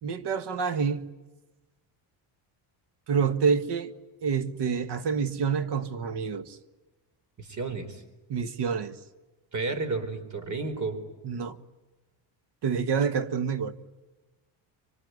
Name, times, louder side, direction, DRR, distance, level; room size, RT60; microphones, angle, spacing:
voice 1, 0.0-1.1 3.1-3.9 4.2-6.6 8.3-9.0 11.2-11.6 12.6-13.7, right 6 dB, 55° right, 1.7 m, -27 dB
voice 2, 7.4-8.0 9.5-11.0, right 3 dB, 35° right, 4.4 m, -32 dB
25.5 x 24.0 x 9.7 m
cardioid pair, 125°, 50 cm